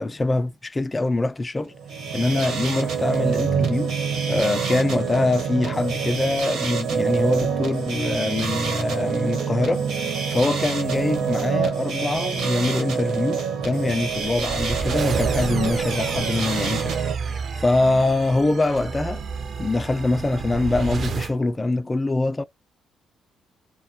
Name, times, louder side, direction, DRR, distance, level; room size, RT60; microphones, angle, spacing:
voice 1, 0.0-1.7 2.1-4.0 4.3-9.8 10.3-17.0 17.3-19.2 19.6-22.4, left 2 dB, 20° left, 0.3 m, -24 dB
sound 1, 1.7-17.1, right 6 dB, 75° right, 1.1 m, -26 dB
sound 2, 13.9-21.4, right 5 dB, 50° right, 0.4 m, -31 dB
2.1 x 2.1 x 2.8 m
cardioid pair, 90°, 0 cm